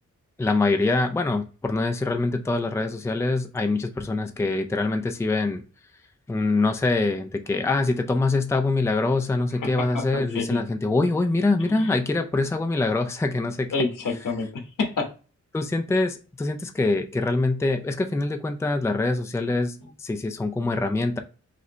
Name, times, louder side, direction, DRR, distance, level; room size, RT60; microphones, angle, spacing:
voice 1, 0.4-5.6 6.3-13.7 15.5-21.2, left 3 dB, 10° left, 6 dB, 0.4 m, -24 dB
voice 2, 9.6-10.6 11.7-11.9 13.7-15.1, left 3 dB, 85° left, 3 dB, 1.3 m, -28 dB
5.0 x 2.8 x 3.1 m, 0.35 s
wide cardioid pair, 160°, 30 cm